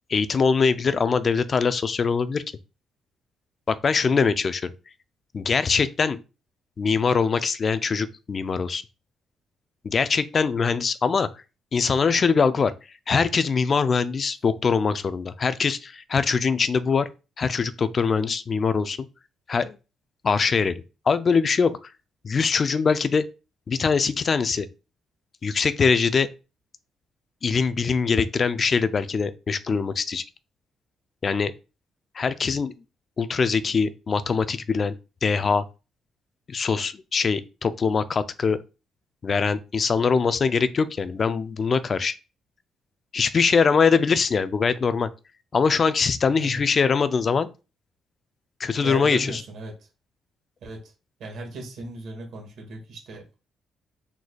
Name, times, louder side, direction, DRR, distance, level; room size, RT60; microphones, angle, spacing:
voice 1, 0.1-2.4 3.7-4.7 5.3-6.2 6.8-8.8 9.8-11.3 11.7-12.7 13.1-17.1 17.4-19.1 19.5-19.8 20.2-21.7 22.2-23.3 23.7-24.7 25.4-26.3 27.4-30.2 31.2-31.5 32.2-32.7 33.2-34.9 35.2-35.6 36.5-38.6 39.2-42.2 43.1-45.1 45.5-47.5 48.6-49.4, left 5 dB, 40° left, 0.4 m, -22 dB
voice 2, 46.3-46.6 48.8-49.9 50.6-50.9 51.2-53.4, right 2 dB, 70° right, 1.8 m, -37 dB
4.6 x 4.1 x 2.3 m
cardioid pair, 90°, 0 cm